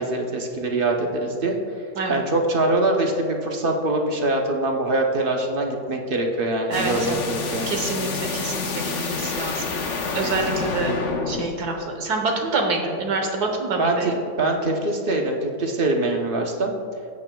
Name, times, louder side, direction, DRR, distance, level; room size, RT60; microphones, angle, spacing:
voice 1, 0.0-1.5 2.1-7.7 10.6-11.1 13.8-14.1 14.4-16.7, right 2 dB, 45° right, 2 dB, 0.8 m, -23 dB
sound 1, 6.7-11.5, left 4 dB, 55° left, 1.0 m, -28 dB
voice 2, 6.7-7.2 7.7-9.6 10.1-10.9 11.3-14.2, right 3 dB, 90° right, 3 dB, 1.7 m, -26 dB
15.0 x 8.4 x 2.3 m, 2.4 s
omnidirectional pair, 1.7 m